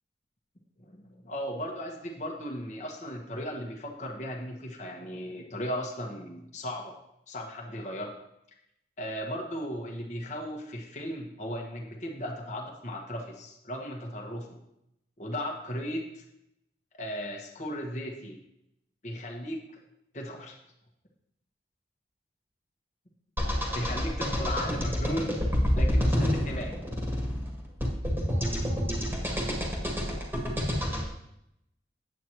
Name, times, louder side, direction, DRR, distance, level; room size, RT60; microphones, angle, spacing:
voice 1, 0.8-6.9 7.3-8.1 9.0-14.5 15.2-16.2 17.0-18.4 19.0-19.6 20.1-20.6 23.7-25.4 25.7-26.8, equal, 40° left, 0 dB, 1.2 m, -36 dB
sound 1, 23.4-31.0, equal, 10° right, 1.5 m, -28 dB
9.3 x 8.0 x 3.0 m, 0.81 s
head